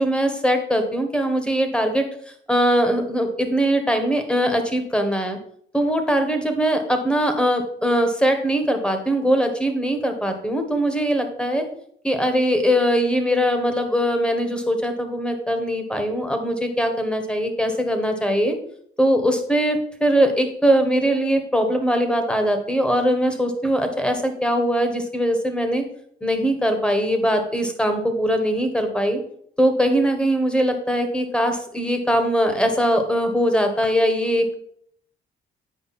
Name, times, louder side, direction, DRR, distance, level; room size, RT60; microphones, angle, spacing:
voice 1, 0.0-2.1 2.5-5.4 5.7-11.6 12.0-18.5 19.0-25.8 26.2-29.2 29.6-34.6, equal, 5° left, 6 dB, 1.4 m, -21 dB
9.3 x 5.1 x 4.3 m, 0.67 s
cardioid pair, 90°, 20 cm